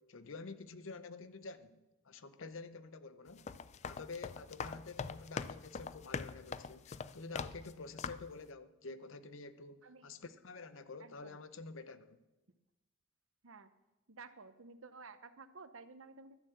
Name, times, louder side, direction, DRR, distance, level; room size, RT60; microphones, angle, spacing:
voice 1, 0.0-3.5 3.8-12.2, left 4 dB, 65° left, 0.7 m, -49 dB
sound 1, 3.3-7.7 8.0-8.4, left 5 dB, 35° left, 0.3 m, -43 dB
voice 2, 9.8-10.2 11.0-11.4 13.4-13.7 14.1-16.4, right 4 dB, 75° right, 0.8 m, -53 dB
12.0 x 7.5 x 7.8 m
head